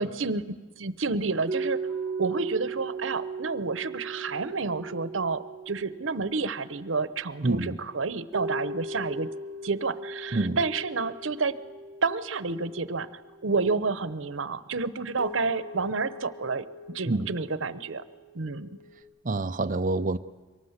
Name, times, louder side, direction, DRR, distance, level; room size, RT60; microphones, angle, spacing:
voice 1, 0.0-1.8 2.2-9.3 9.6-11.6 12.0-13.1 13.4-18.0 18.3-18.7, right 4 dB, 85° right, 0.9 m, -30 dB
sound 1, 1.5-6.9 8.3-13.7 15.2-19.0, right 3 dB, ahead, 4.7 m, -38 dB
voice 2, 7.4-7.8 10.3-10.6 17.1-17.3 19.2-20.2, right 2 dB, 45° right, 0.7 m, -27 dB
23.5 x 19.0 x 8.1 m
head